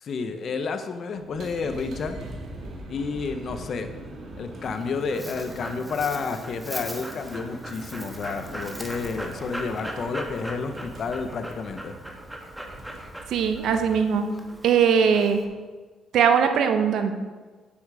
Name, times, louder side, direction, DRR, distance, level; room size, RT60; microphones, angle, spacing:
voice 1, 0.0-2.2 2.9-3.9 4.4-11.9, left 4 dB, 55° left, 8 dB, 1.0 m, -30 dB
sound 1, 1.1-15.6, right 2 dB, 55° right, 2.3 m, -43 dB
Dog, 4.6-15.4, right 1 dB, 5° right, 1.6 m, -39 dB
voice 2, 13.3-14.3 14.6-15.4 16.1-17.1, right 7 dB, 75° right, 7 dB, 1.1 m, -20 dB
8.8 x 8.5 x 5.0 m, 1.4 s
cardioid pair, 90°, 0 cm